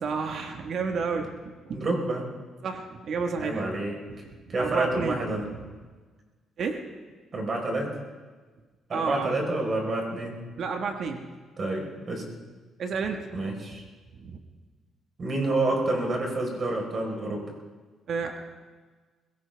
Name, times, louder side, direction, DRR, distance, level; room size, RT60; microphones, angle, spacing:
voice 1, 0.0-1.3 1.6-1.8 2.6-3.6 4.1-5.3 6.6-6.8 8.9-9.3 10.6-11.2 12.8-13.3 14.2-14.4 18.1-18.3, right 5 dB, 60° right, 4 dB, 1.5 m, -31 dB
voice 2, 1.7-2.2 3.4-4.0 4.5-5.5 7.3-7.9 8.9-10.4 11.6-12.2 13.3-13.8 15.2-17.5, right 2 dB, 45° right, 0 dB, 4.5 m, -28 dB
21.5 x 17.0 x 3.5 m, 1.4 s
cardioid pair, 90°, 0 cm